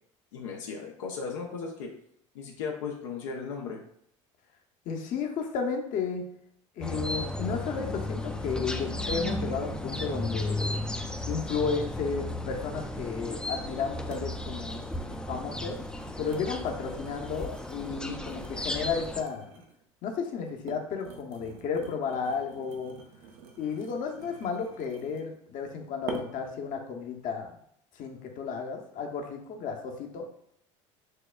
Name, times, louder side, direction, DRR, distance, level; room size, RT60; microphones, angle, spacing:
voice 1, 0.3-1.9 2.3-3.8, left 5 dB, 85° left, -1 dB, 0.6 m, -36 dB
voice 2, 4.8-6.3 6.8-10.7 11.3-14.9 15.3-15.8 16.2-19.5 20.0-22.9 23.6-27.5 27.9-30.3, left 5 dB, 55° left, 3 dB, 0.8 m, -33 dB
sound 1, 6.8-19.2, left 1 dB, 5° left, 0.4 m, -35 dB
sound 2, 14.1-14.3 14.7-19.8 20.4-25.4 26.1-26.5 27.1-27.3, right 5 dB, 70° right, 0.7 m, -46 dB
6.4 x 2.3 x 2.2 m, 0.69 s
hypercardioid pair, 80°, 16 cm